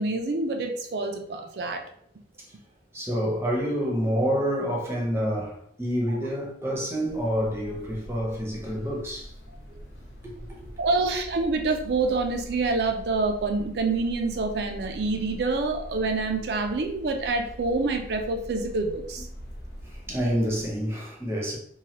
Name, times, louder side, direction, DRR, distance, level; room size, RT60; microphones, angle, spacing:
voice 1, 0.0-1.8 9.7-9.8 10.8-19.3, right 3 dB, 65° right, 0.4 m, -27 dB
voice 2, 2.9-9.3 10.2-10.7 18.6-18.7 19.8-21.6, equal, 15° right, 0.7 m, -28 dB
sound 1, 7.1-20.7, equal, 75° left, 0.9 m, -43 dB
3.1 x 2.2 x 2.8 m
head